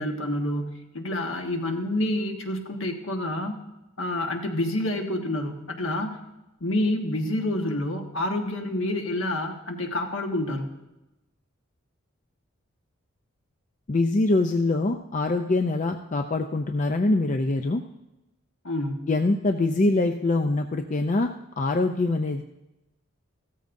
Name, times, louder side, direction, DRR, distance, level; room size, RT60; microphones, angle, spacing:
voice 1, 0.0-3.6 4.0-6.2 6.6-10.7 18.6-19.1, left 1 dB, 65° left, 3 dB, 1.4 m, -28 dB
voice 2, 13.9-17.8 19.1-21.3 21.6-22.4, left 2 dB, 35° left, 5 dB, 0.4 m, -24 dB
16.0 x 13.5 x 2.6 m, 0.96 s
head